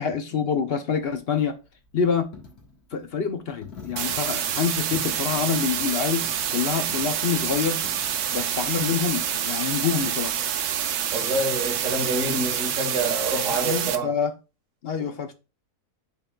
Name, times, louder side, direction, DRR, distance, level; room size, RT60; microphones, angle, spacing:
voice 1, 0.0-1.5 1.9-2.3 2.9-7.8 8.3-10.3 13.6-14.3 14.8-15.3, left 6 dB, 50° left, 0.8 m, -26 dB
Coin (dropping), 1.0-9.5, left 4 dB, 75° left, 2.0 m, -47 dB
sound 1, 4.0-14.0, right 9 dB, 85° right, 1.2 m, -27 dB
voice 2, 11.1-14.1, right 2 dB, 60° right, 1.8 m, -27 dB
10.5 x 3.8 x 2.3 m
omnidirectional pair, 1.6 m